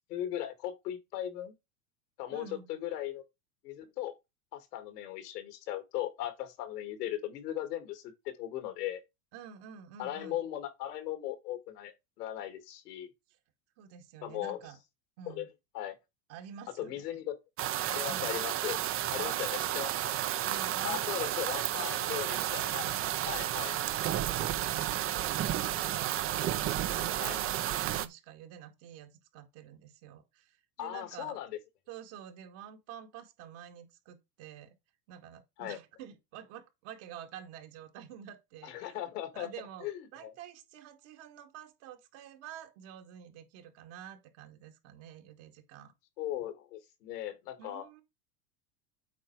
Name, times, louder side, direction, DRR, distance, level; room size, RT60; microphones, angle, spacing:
voice 1, 0.1-1.5 2.2-3.2 3.6-4.1 4.5-9.0 10.0-13.1 14.2-14.6 15.3-15.5 15.7-15.9 16.8-17.4 17.9-18.8 19.1-20.2 20.8-22.9 23.3-23.8 27.2-27.4 30.8-31.6 35.6-35.8 38.6-39.5 39.8-40.3 46.2-47.9, left 12 dB, 85° left, 2.2 m, -38 dB
voice 2, 2.3-2.8 9.3-10.4 13.8-14.8 15.2-15.5 16.3-17.2 18.0-18.4 19.1-19.8 20.4-23.2 24.4-31.4 31.9-34.8 35.1-39.0 39.3-45.9 47.6-48.0, right 9 dB, 60° right, 2.1 m, -48 dB
sound 1, 17.6-28.1, right 12 dB, 30° right, 0.5 m, -32 dB
8.4 x 4.3 x 4.6 m
supercardioid pair, 120°, 46 cm